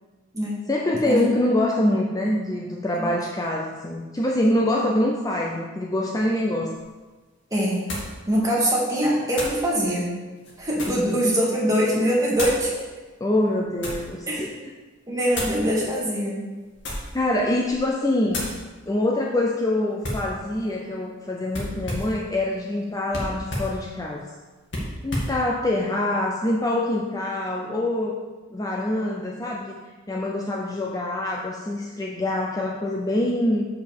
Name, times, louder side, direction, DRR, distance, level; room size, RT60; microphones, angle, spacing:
voice 1, 0.7-6.8 10.9-11.1 13.2-14.7 17.1-18.5 18.9-24.3 25.0-28.2 28.5-29.8 30.1-33.7, left 1 dB, 20° left, -2 dB, 0.6 m, -25 dB
sound 1, 6.7-6.8 7.9-8.2 9.3-9.6 10.4-11.1 12.3-12.7 13.4-14.1 15.3-15.6 16.7-17.2 17.6-17.9 18.3-18.6 20.0-20.3 21.5-22.2 23.1-23.8 24.7-25.4, left 1 dB, 60° left, 2.0 m, -31 dB
voice 2, 7.5-7.8 8.3-10.1 10.6-12.8 14.3-14.5 15.1-16.4, equal, 15° right, -5 dB, 1.9 m, -23 dB
5.9 x 5.2 x 6.7 m, 1.3 s
head